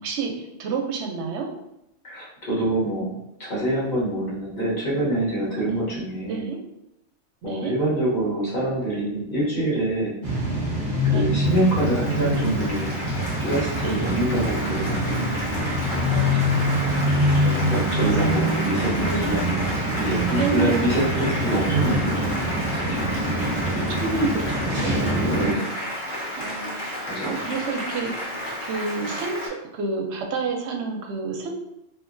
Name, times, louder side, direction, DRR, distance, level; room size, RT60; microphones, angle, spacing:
voice 1, 0.0-1.5 5.6-5.7 6.3-6.6 7.4-7.7 11.1-11.2 13.8-14.1 16.1-16.5 18.0-18.4 18.8-19.5 20.3-20.9 23.3-25.6 26.4-26.7 27.2-31.5, right 4 dB, 85° right, 2 dB, 0.9 m, -30 dB
voice 2, 2.0-6.4 7.4-10.1 11.0-12.9 13.4-15.3 17.4-19.7 20.0-22.4 22.7-23.1 25.3-25.8 27.1-27.5, right 1 dB, 45° left, -7 dB, 1.1 m, -26 dB
sound 1, 10.2-25.5, equal, 50° right, 0.9 m, -25 dB
Applause, 11.4-29.5, equal, 75° left, 1.1 m, -31 dB
2.8 x 2.6 x 2.5 m, 0.84 s
omnidirectional pair, 1.1 m